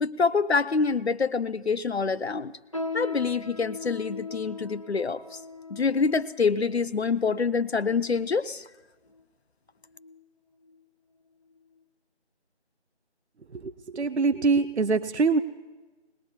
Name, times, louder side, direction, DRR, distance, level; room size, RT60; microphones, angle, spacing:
voice 1, 0.0-2.5 2.9-5.2 5.7-8.6, left 5 dB, 70° left, 15 dB, 0.6 m, -26 dB
sound 1, 2.7-8.4 9.1-9.2 9.9-10.2 10.6-10.8 11.5-11.6, left 3 dB, 30° left, 0.8 m, -39 dB
voice 2, 13.5-15.4, right 4 dB, 75° right, 12 dB, 0.7 m, -24 dB
20.5 x 20.0 x 2.7 m, 1.2 s
figure-of-eight pair, 170°, 34 cm